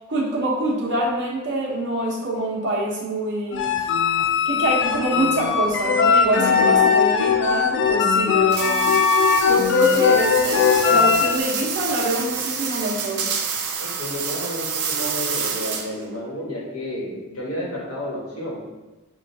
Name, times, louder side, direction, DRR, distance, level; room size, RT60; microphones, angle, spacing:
voice 1, 0.1-3.9 4.5-13.3, right 1 dB, 55° right, -3 dB, 0.9 m, -25 dB
sound 1, 3.5-11.4, left 6 dB, 55° left, 0.3 m, -19 dB
sound 2, 8.5-16.1, right 6 dB, 85° right, 0.6 m, -28 dB
voice 2, 13.8-18.6, equal, 75° left, -5 dB, 1.3 m, -31 dB
6.2 x 2.3 x 2.7 m, 1.1 s
head